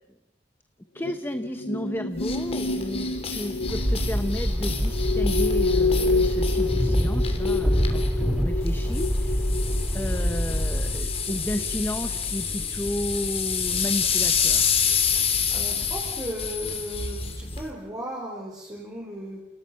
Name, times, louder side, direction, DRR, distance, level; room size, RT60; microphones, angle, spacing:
voice 1, 0.9-9.4 9.9-14.7, left 1 dB, 15° left, 9 dB, 1.0 m, -32 dB
sound 1, 1.0-11.3 11.6-11.8, left 3 dB, 90° left, 2.5 m, -29 dB
sound 2, 2.2-17.7, left 6 dB, 35° left, 3.2 m, -29 dB
sound 3, 3.7-11.0, equal, 5° right, 3.9 m, -25 dB
voice 2, 15.5-19.4, equal, 20° right, -4 dB, 4.8 m, -36 dB
29.5 x 29.5 x 5.8 m, 0.93 s
head